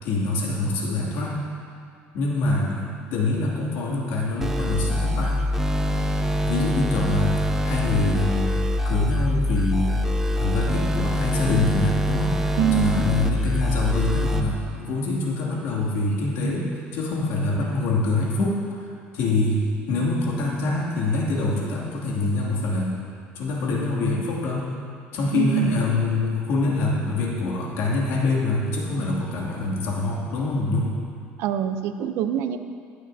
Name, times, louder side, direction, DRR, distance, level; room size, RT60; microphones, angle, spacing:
voice 1, 0.0-1.4 2.1-2.8 3.1-5.4 6.4-10.1 10.4-12.4 12.7-23.0 23.3-24.7 25.1-30.9, left 2 dB, 75° left, -4 dB, 2.6 m, -25 dB
sound 1, 4.4-14.4, left 1 dB, 10° right, 0.7 m, -24 dB
voice 2, 12.6-13.0 25.3-25.8 31.4-32.6, right 10 dB, 70° right, 9 dB, 0.7 m, -24 dB
17.5 x 9.6 x 2.8 m, 2.2 s
cardioid pair, 145°, 4 cm